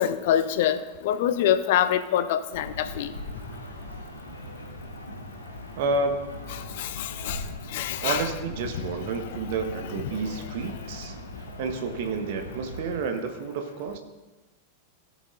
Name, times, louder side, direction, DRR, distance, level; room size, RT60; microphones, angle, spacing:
voice 1, 0.0-3.1 6.8-7.4 7.7-8.3, left 10 dB, 50° left, 12 dB, 0.7 m, -25 dB
sound 1, 2.5-13.0, left 1 dB, 85° left, 1.9 m, -40 dB
voice 2, 5.8-6.2 8.0-11.1 11.6-14.0, right 4 dB, 50° right, 6 dB, 1.5 m, -30 dB
16.0 x 7.8 x 3.9 m, 1.2 s
figure-of-eight pair, 90°, 0 cm